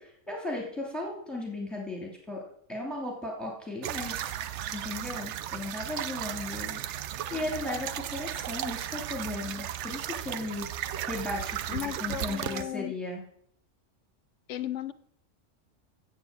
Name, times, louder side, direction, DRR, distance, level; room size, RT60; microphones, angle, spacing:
voice 1, 0.0-2.4 2.7-4.3 4.7-6.8 7.3-10.7 11.1-13.2, left 2 dB, ahead, -1 dB, 2.7 m, -36 dB
sound 1, 3.8-12.6, right 11 dB, 70° right, 0.9 m, -35 dB
voice 2, 11.7-12.9 14.5-14.9, left 12 dB, 75° left, 14 dB, 1.0 m, -35 dB
8.2 x 6.9 x 7.4 m, 0.65 s
omnidirectional pair, 1.3 m